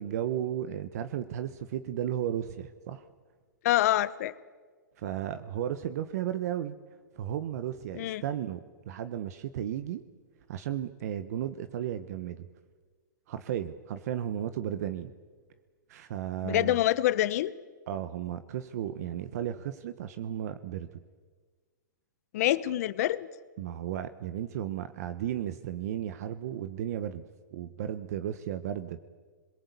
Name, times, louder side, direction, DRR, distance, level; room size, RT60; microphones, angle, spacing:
voice 1, 0.0-3.0 5.0-6.8 7.2-10.0 10.5-12.5 13.3-15.1 15.9-16.8 17.9-20.9 23.6-27.2 27.5-29.0, right 10 dB, 55° right, 10 dB, 1.3 m, -34 dB
voice 2, 3.6-4.3 7.9-8.2 16.4-17.5 22.3-23.3, left 14 dB, 50° left, 16 dB, 1.2 m, -26 dB
27.5 x 22.0 x 8.5 m, 1.5 s
hypercardioid pair, 135°, 10 cm